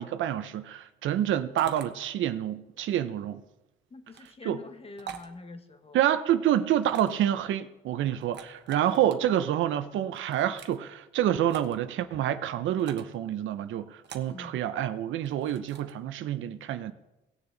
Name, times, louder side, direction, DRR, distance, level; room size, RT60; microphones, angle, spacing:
voice 1, 0.0-3.4 4.4-4.6 5.9-16.9, right 11 dB, 80° right, 0.7 m, -28 dB
sound 1, 1.6-1.9 4.1-4.3 5.0-5.3 6.8-7.3 8.2-9.1 10.1-10.8 11.5-11.7 12.8-13.1 14.0-14.4 15.2-15.9, right 8 dB, 60° right, 1.0 m, -44 dB
voice 2, 3.9-6.0 14.3-14.6, left 3 dB, 30° left, 1.2 m, -45 dB
18.0 x 6.9 x 3.9 m
cardioid pair, 90°, 20 cm